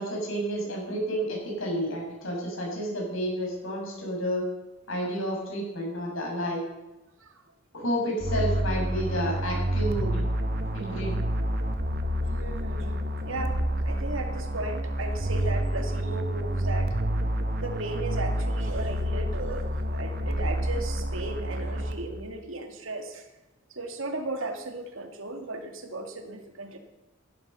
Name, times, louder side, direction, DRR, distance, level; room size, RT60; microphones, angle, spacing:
voice 1, 0.0-4.4 4.9-6.6 7.7-10.3 10.7-11.2, equal, 90° left, -2 dB, 7.0 m, -30 dB
sound 1, 8.2-22.3, right 1 dB, 50° right, 1.4 m, -29 dB
voice 2, 12.3-17.0 17.6-23.2 23.7-26.8, right 2 dB, 85° right, 5 dB, 2.3 m, -36 dB
16.0 x 12.0 x 5.7 m, 1.0 s
head